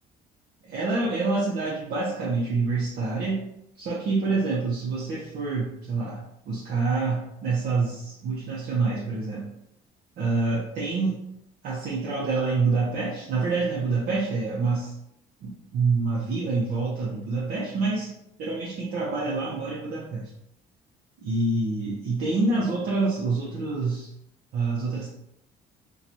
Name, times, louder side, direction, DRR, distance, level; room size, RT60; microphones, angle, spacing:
voice 1, 0.6-3.4 3.8-9.5 10.2-11.2 11.6-14.9 15.4-18.1 18.4-20.3 21.2-24.1 24.5-25.1, right 3 dB, 60° right, -6 dB, 0.7 m, -27 dB
2.9 x 2.3 x 2.6 m, 0.79 s
cardioid pair, 110°, 17 cm